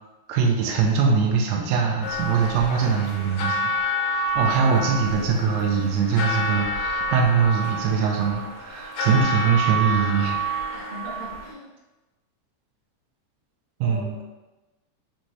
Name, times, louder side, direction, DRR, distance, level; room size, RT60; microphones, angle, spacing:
voice 1, 0.3-3.6 4.0-10.4 13.8-14.2, right 6 dB, 90° right, 0 dB, 1.5 m, -22 dB
sound 1, 2.0-11.5, right 1 dB, 80° left, 2.0 m, -28 dB
voice 2, 4.4-4.9 10.7-11.7 13.8-14.2, equal, 70° right, -3 dB, 1.8 m, -38 dB
5.7 x 2.6 x 3.0 m, 1.1 s
omnidirectional pair, 3.7 m